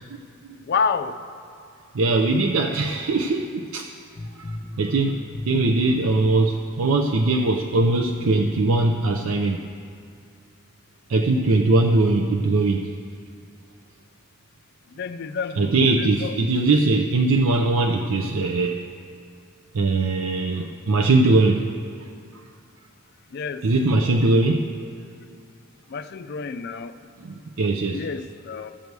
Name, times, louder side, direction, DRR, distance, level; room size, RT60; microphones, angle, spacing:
voice 1, 0.7-1.2 15.0-16.4 23.3-23.6 25.9-26.9 27.9-28.7, left 5 dB, 50° left, 11 dB, 0.4 m, -28 dB
voice 2, 1.9-3.9 4.4-9.7 11.1-12.9 15.6-18.8 19.7-21.7 23.6-24.7 27.2-28.0, right 2 dB, 85° right, 2 dB, 0.5 m, -21 dB
sound 1, 4.2-6.8 7.5-7.6 8.0-9.3, left 1 dB, 35° left, 0.8 m, -35 dB
15.0 x 6.7 x 4.7 m, 2.3 s
head